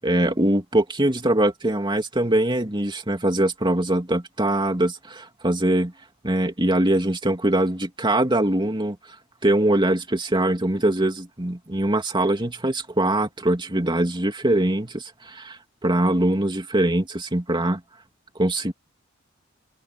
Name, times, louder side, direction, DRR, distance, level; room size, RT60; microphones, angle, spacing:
voice 1, 0.0-5.9 6.2-9.0 9.4-17.8 18.4-18.7, right 1 dB, 25° right, 2.8 m, -22 dB
open air
head